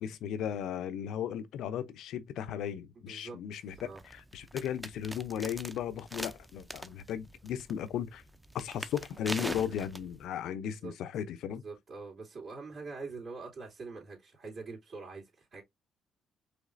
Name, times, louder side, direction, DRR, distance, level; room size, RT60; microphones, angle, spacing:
voice 1, 0.0-3.8 4.0-8.2 8.5-11.6, left 9 dB, 80° left, 0.6 m, -36 dB
voice 2, 2.9-4.0 10.5-10.9 11.5-15.6, right 4 dB, 60° right, 2.6 m, -45 dB
sound 1, 3.7-10.3, equal, 5° right, 0.6 m, -43 dB
5.2 x 3.2 x 2.6 m
cardioid pair, 90°, 0 cm